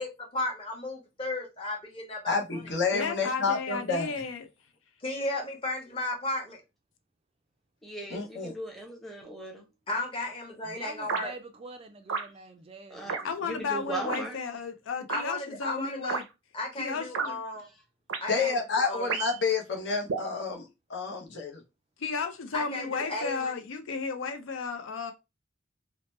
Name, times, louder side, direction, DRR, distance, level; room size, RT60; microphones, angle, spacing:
voice 1, 0.0-2.6 5.0-6.6 9.9-11.3 15.1-16.2 16.5-17.7 18.2-19.1 22.5-23.5, left 2 dB, 25° left, 1.0 m, -34 dB
voice 2, 2.3-4.1 8.1-8.5 18.3-21.6, left 4 dB, 60° left, 0.8 m, -29 dB
voice 3, 2.9-4.5 13.2-16.2 16.8-17.4 22.0-25.1, left 5 dB, 80° left, 0.5 m, -33 dB
voice 4, 7.8-9.7 12.9-14.4 17.6-17.7, right 2 dB, ahead, 0.7 m, -38 dB
voice 5, 10.7-13.6, right 3 dB, 30° right, 0.3 m, -46 dB
Selection Sounds, 11.1-11.3 12.1-12.3 13.1-13.2 14.1-14.3 15.1-15.2 16.1-16.2 17.1-17.3 18.1-18.2 19.1-19.4 20.1-20.3, right 5 dB, 90° right, 0.5 m, -31 dB
2.8 x 2.0 x 3.1 m
head